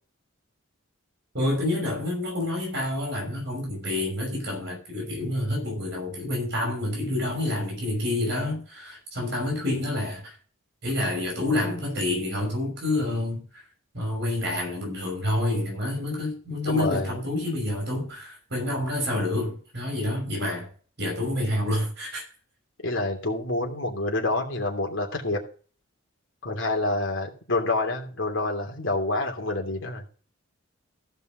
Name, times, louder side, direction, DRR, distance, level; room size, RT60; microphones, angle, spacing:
voice 1, 1.3-10.3 10.8-13.6 13.9-20.7 21.0-22.2, left 1 dB, 55° right, 6.0 m, -28 dB
voice 2, 16.6-17.2 22.8-25.4 26.4-30.0, left 2 dB, 65° left, 3.0 m, -27 dB
15.5 x 5.5 x 6.0 m
head